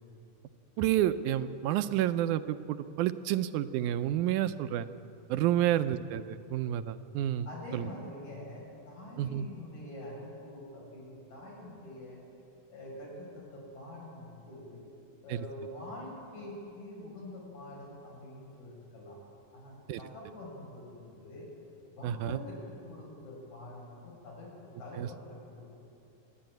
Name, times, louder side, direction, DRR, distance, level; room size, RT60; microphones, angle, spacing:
voice 1, 0.8-4.9 5.3-7.5 7.7-7.8 9.2-9.5 15.3-15.4 19.9-20.0 22.0-22.4 25.0-25.1, right 12 dB, 90° right, 11 dB, 2.1 m, -29 dB
voice 2, 5.5-5.9 7.5-12.2 12.7-14.9 15.2-19.2 19.5-21.5 21.9-25.7, left 1 dB, 70° left, -4 dB, 7.5 m, -46 dB
27.0 x 11.0 x 9.1 m, 2.7 s
omnidirectional pair, 3.5 m